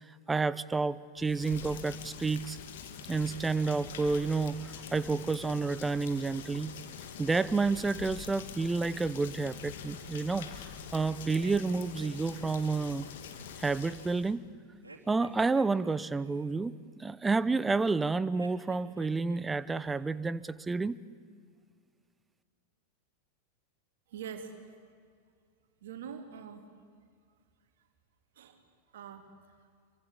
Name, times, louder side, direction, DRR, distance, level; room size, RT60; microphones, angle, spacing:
voice 1, 0.3-2.6 3.1-6.7 7.2-10.5 10.9-13.1 13.6-14.5 15.1-16.7 17.0-21.0, right 4 dB, 10° right, 18 dB, 0.9 m, -30 dB
Rain, 1.1-14.3, left 7 dB, 55° left, 2.6 m, -45 dB
sound 1, 11.3-13.2 14.8-16.7 18.3-19.4 19.7-20.2, right 3 dB, 80° right, 3.4 m, -53 dB
voice 2, 24.1-24.8 25.8-26.7 28.3-28.6 28.9-29.6, right 7 dB, 60° right, 6 dB, 3.3 m, -44 dB
28.0 x 24.5 x 8.6 m, 2.1 s
figure-of-eight pair, 90°, 0 cm